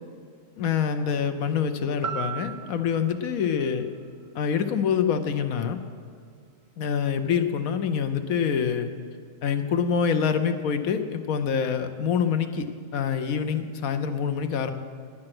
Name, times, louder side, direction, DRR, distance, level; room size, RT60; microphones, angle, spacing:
voice 1, 0.6-3.9 4.3-5.8 6.8-8.9 9.4-12.7 12.9-14.7, left 7 dB, 85° left, 8 dB, 1.2 m, -26 dB
sound 1, 2.0-6.1 6.6-6.7, right 8 dB, 75° right, 1.0 m, -39 dB
19.5 x 7.7 x 6.0 m, 2.1 s
omnidirectional pair, 1.4 m